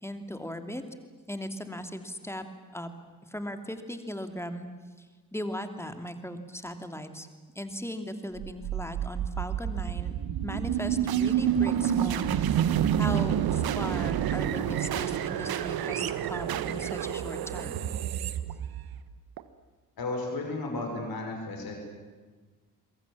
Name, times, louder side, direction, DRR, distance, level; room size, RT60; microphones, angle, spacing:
voice 1, 0.0-0.8 1.3-2.4 2.7-2.9 3.3-4.7 5.0-5.1 5.3-7.3 7.5-10.1 10.4-12.7 12.9-17.8, equal, 5° left, 7 dB, 2.7 m, -38 dB
sound 1, 8.4-19.4, right 10 dB, 50° right, 1.3 m, -28 dB
voice 2, 20.0-21.8, left 2 dB, 45° left, 2 dB, 6.2 m, -33 dB
28.5 x 23.0 x 7.5 m, 1.4 s
figure-of-eight pair, 40°, 48 cm